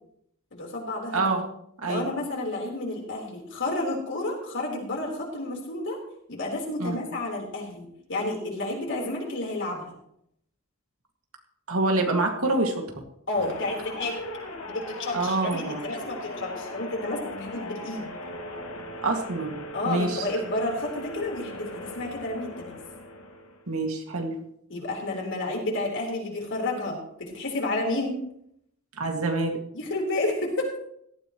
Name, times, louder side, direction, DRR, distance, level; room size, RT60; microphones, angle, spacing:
voice 1, 0.5-1.2 1.9-6.0 6.3-9.8 13.3-14.2 14.7-18.1 19.7-22.7 24.7-28.1 29.7-30.8, left 2 dB, 60° left, -1 dB, 4.3 m, -31 dB
voice 2, 1.1-1.5 1.8-2.1 6.8-7.0 11.7-12.9 15.1-15.8 19.0-20.2 23.7-24.4 29.0-29.6, right 2 dB, 85° right, 2 dB, 2.3 m, -26 dB
sound 1, 13.4-23.7, left 1 dB, 80° left, 2.6 m, -39 dB
17.0 x 13.0 x 3.2 m, 0.74 s
head